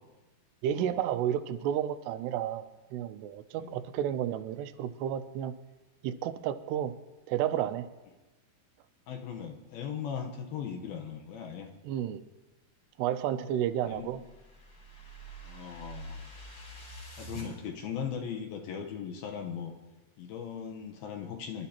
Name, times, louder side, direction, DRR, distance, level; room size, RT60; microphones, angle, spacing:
voice 1, 0.6-2.6 2.9-5.5 6.0-6.9 7.3-7.9 11.8-12.2 13.0-14.2, right 10 dB, 85° right, 10 dB, 2.8 m, -31 dB
voice 2, 9.1-11.7 13.8-14.1 15.4-16.2 17.2-19.7 20.2-21.7, left 7 dB, 70° left, 3 dB, 2.7 m, -38 dB
sound 1, 13.4-17.5, right 1 dB, 40° left, 4.8 m, -46 dB
26.5 x 11.5 x 2.9 m, 1.1 s
omnidirectional pair, 4.7 m